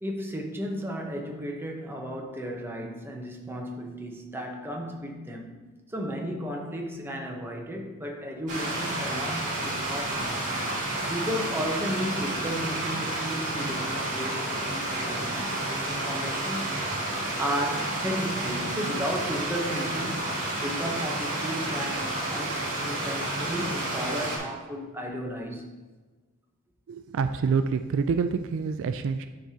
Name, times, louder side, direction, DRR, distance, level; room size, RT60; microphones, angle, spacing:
voice 1, 0.0-5.6 5.9-10.5 11.1-17.0 17.4-25.7, equal, 10° right, 1 dB, 0.7 m, -34 dB
Stream, 8.5-24.4, right 1 dB, 35° right, 2.4 m, -30 dB
voice 2, 26.9-29.3, right 5 dB, 60° right, 10 dB, 0.3 m, -27 dB
11.5 x 4.7 x 2.8 m, 1.3 s
head